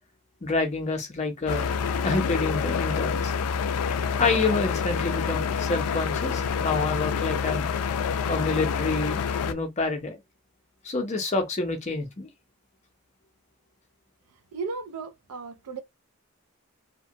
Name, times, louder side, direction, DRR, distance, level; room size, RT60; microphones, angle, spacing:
voice 1, 0.4-1.7 2.0-3.3 4.2-7.7 8.3-10.2 10.8-12.3, left 3 dB, 30° left, 0.5 m, -28 dB
sound 1, 1.5-9.5, left 6 dB, 85° left, 0.3 m, -27 dB
voice 2, 14.5-15.8, right 4 dB, 90° right, 0.4 m, -35 dB
2.8 x 2.1 x 2.6 m
head